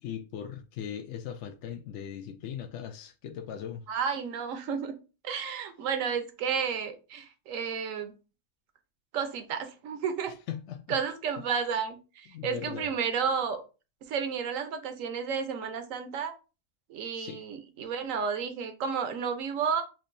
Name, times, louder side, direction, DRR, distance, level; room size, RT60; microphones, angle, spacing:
voice 1, 0.0-3.8 10.3-11.0 11.4-11.5 12.3-13.2 17.1-17.4, left 9 dB, 65° left, 0.8 m, -39 dB
voice 2, 3.9-4.9 5.2-8.1 9.1-10.3 10.9-13.6 14.1-16.3 16.9-19.8, right 6 dB, 70° right, 1.1 m, -32 dB
7.3 x 2.6 x 2.6 m
omnidirectional pair, 1.5 m